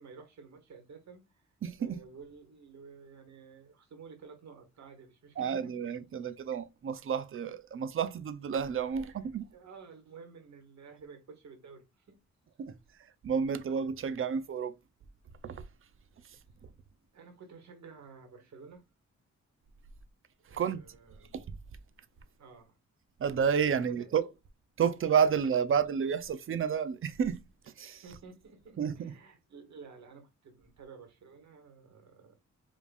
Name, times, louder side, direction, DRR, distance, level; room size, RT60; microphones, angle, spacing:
voice 1, 0.0-1.5 1.8-5.7 9.0-12.2 16.2-16.4 17.1-18.8 20.5-21.4 22.4-22.8 23.6-24.1 25.2-25.6 28.0-32.3, right 5 dB, 65° right, 1.8 m, -52 dB
voice 2, 1.6-2.0 5.4-9.4 12.6-12.7 13.2-14.7 15.4-15.6 20.5-20.8 21.3-21.5 23.2-24.3 24.8-27.4 27.8-28.0 28.8-29.1, right 7 dB, 45° right, 0.6 m, -30 dB
5.2 x 3.3 x 2.4 m
wide cardioid pair, 150°, 30 cm